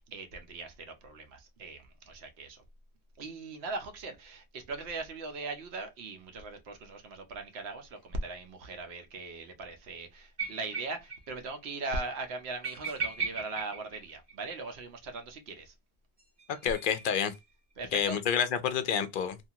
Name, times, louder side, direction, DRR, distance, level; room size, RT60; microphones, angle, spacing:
voice 1, 0.0-2.6 3.2-15.7 17.8-18.2, right 3 dB, 80° right, 1.0 m, -40 dB
sound 1, 10.4-11.2 11.5-11.6 11.8-11.9 12.6-14.7 16.2-17.4, right 5 dB, 35° right, 0.5 m, -37 dB
voice 2, 16.5-17.3 17.9-19.4, left 8 dB, 60° left, 0.6 m, -29 dB
2.8 x 2.4 x 2.6 m
omnidirectional pair, 1.1 m